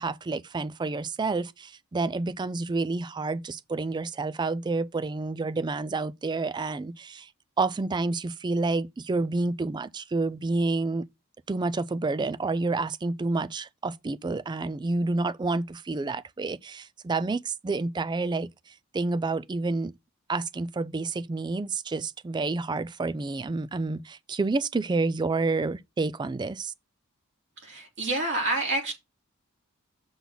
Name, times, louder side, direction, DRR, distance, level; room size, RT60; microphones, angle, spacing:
voice 1, 0.0-7.3 7.6-11.0 11.5-19.9 20.3-26.7, right 3 dB, 20° right, 0.3 m, -29 dB
voice 2, 27.6-28.9, right 2 dB, 55° right, 3.0 m, -28 dB
7.0 x 4.0 x 5.9 m
head